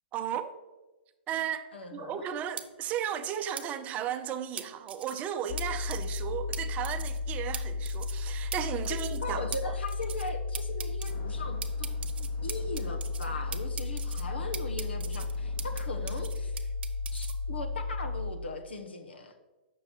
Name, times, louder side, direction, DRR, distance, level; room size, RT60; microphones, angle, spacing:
voice 1, 0.1-0.5 1.3-9.7, right 9 dB, 25° right, 0.6 m, -35 dB
voice 2, 1.7-2.3 8.9-16.7 17.1-19.3, left 2 dB, 80° left, 1.1 m, -39 dB
sound 1, 2.6-2.7 3.6-3.7 4.6-5.1 5.6-5.7 5.9-6.2 6.5-6.6 6.8-7.2 7.5-7.6 7.8-8.2 8.5-8.6 8.8-9.2 9.5-9.6 9.9-10.3 10.5-11.1 11.6-13.3 13.5-14.2 14.5-15.8 16.1-17.3, right 8 dB, 70° right, 0.8 m, -40 dB
sound 2, 5.5-18.3, left 3 dB, 40° left, 0.4 m, -34 dB
sound 3, 11.1-16.4, left 3 dB, 60° left, 1.3 m, -53 dB
7.6 x 6.1 x 4.4 m
hypercardioid pair, 125°, 6 cm